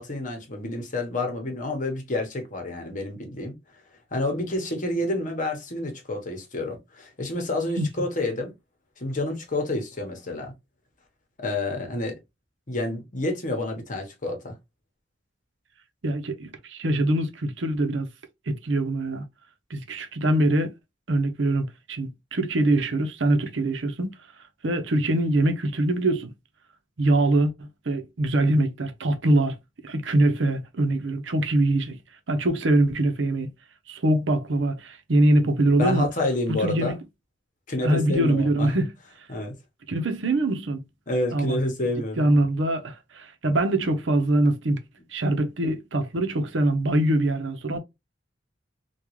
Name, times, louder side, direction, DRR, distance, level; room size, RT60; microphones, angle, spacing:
voice 1, 0.0-3.5 4.1-8.5 9.0-10.5 11.4-12.2 12.7-14.6 35.8-36.9 37.7-38.7 39.3-39.6 41.1-42.3, left 2 dB, 45° left, 1.0 m, -29 dB
voice 2, 16.0-18.1 18.5-19.2 19.7-20.7 21.1-24.1 24.6-26.3 27.0-29.6 29.8-32.0 32.3-33.5 33.9-36.1 36.6-37.0 37.8-38.9 39.9-40.8 41.3-41.6 42.2-44.8 45.1-47.8, right 1 dB, 80° right, 0.7 m, -23 dB
3.6 x 2.4 x 3.0 m
head